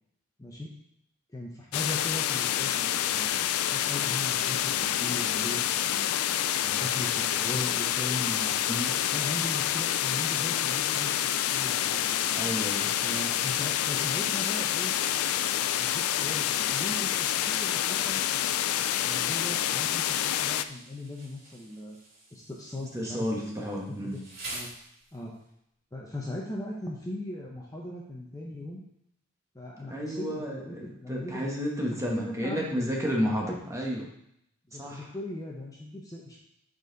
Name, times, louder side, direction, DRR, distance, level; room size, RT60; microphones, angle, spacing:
voice 1, 1.3-6.1 6.6-8.6 9.1-11.1 11.5-12.2 13.0-14.9 15.5-18.2 19.0-22.0 22.3-23.7 24.1-24.2 24.5-24.7 25.1-25.3 25.9-28.8 29.5-31.5 31.8-32.9 33.5-33.6 34.7-36.4, left 1 dB, 15° left, -2 dB, 0.8 m, -39 dB
sound 1, 1.7-20.6, left 11 dB, 75° left, 0.3 m, -28 dB
voice 2, 12.3-12.9 22.9-24.2 29.9-34.1 34.7-35.1, equal, 15° right, -2 dB, 1.3 m, -31 dB
Insect, 20.5-25.4, right 2 dB, 45° right, 2.3 m, -46 dB
7.9 x 4.1 x 3.9 m, 0.74 s
head